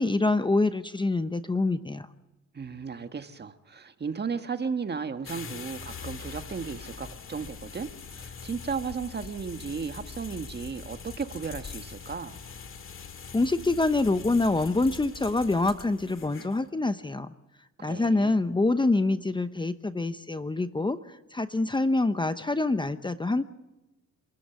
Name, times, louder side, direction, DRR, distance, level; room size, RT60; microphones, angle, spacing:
voice 1, 0.0-2.1 13.3-17.3 17.8-23.4, left 2 dB, 15° left, 11 dB, 0.9 m, -26 dB
voice 2, 2.5-12.4 17.8-18.4, right 5 dB, 35° right, 8 dB, 1.6 m, -35 dB
sound 1, 5.2-16.7, left 6 dB, 45° left, 2.0 m, -43 dB
27.0 x 14.0 x 8.3 m, 1.0 s
cardioid pair, 90°, 30 cm